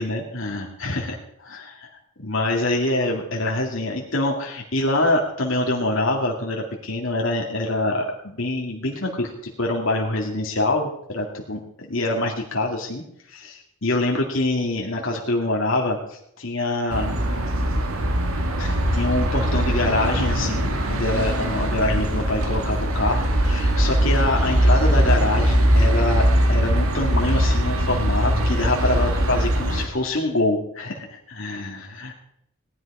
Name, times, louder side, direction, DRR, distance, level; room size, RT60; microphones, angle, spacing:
voice 1, 0.0-13.0 13.3-17.1 18.6-32.1, left 2 dB, 65° left, 0 dB, 2.2 m, -25 dB
sound 1, 16.9-29.9, equal, 85° right, 2.0 m, -21 dB
18.5 x 11.5 x 4.9 m, 0.75 s
head